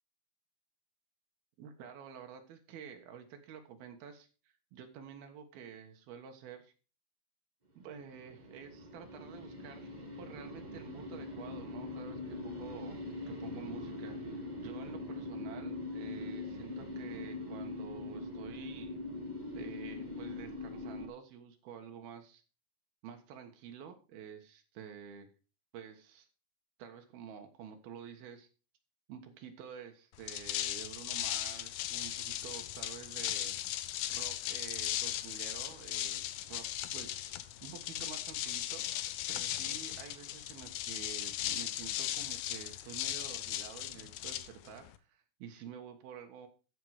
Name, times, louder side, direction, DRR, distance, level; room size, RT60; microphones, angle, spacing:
voice 1, 1.6-4.3 4.7-6.7 7.8-9.9 10.2-13.0 13.3-19.0 19.5-22.4 23.0-25.3 25.7-26.3 26.8-28.5 29.1-33.6 34.1-36.2 36.5-36.7 36.9-46.5, right 7 dB, 85° right, 5 dB, 3.4 m, -49 dB
sound 1, 7.9-21.1, left 2 dB, 55° right, 0.4 m, -42 dB
sound 2, 30.1-45.0, left 13 dB, 75° left, 2.0 m, -37 dB
13.5 x 6.1 x 5.0 m, 0.34 s
omnidirectional pair, 4.3 m